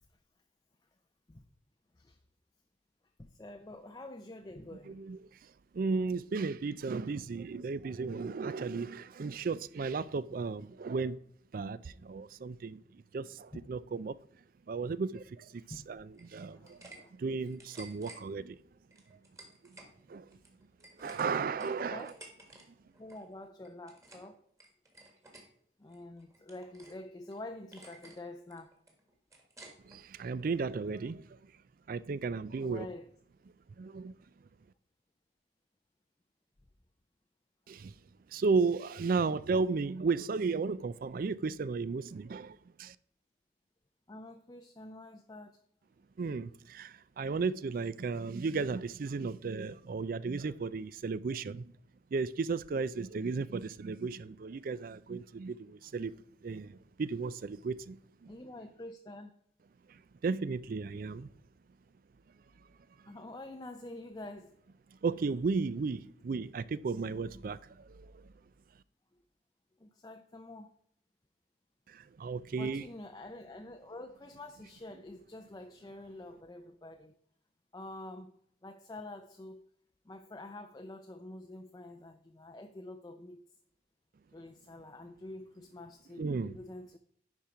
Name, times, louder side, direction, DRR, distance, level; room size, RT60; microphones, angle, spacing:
voice 1, 3.2-5.0 13.5-13.7 15.6-15.9 16.5-17.1 21.6-22.2 23.0-24.4 25.8-28.8 32.6-33.1 44.1-45.6 58.3-59.3 63.1-64.6 69.1-69.2 69.8-70.8 72.6-77.1 77.7-78.3 78.6-79.7 80.0-83.4 84.3-87.0, left 2 dB, 20° left, 0.5 m, -47 dB
voice 2, 4.9-5.2 5.7-11.2 11.5-14.2 14.7-16.9 17.2-18.6 20.1-20.3 21.0-22.1 29.8-31.4 31.9-32.9 33.8-34.1 37.7-37.9 38.3-42.9 46.2-51.7 52.1-56.1 56.4-58.3 59.9-61.3 65.0-68.3 71.9-72.8 86.2-86.6, right 4 dB, 50° right, 0.4 m, -34 dB
sound 1, 16.1-17.0 17.3-18.2 18.9-19.9 20.3-22.6 22.9-23.2 23.6-24.3 24.6-25.4 25.9-27.0 27.3-27.4 27.7-28.2 28.5-30.0, right 2 dB, 15° right, 1.7 m, -53 dB
10.5 x 4.5 x 4.8 m
head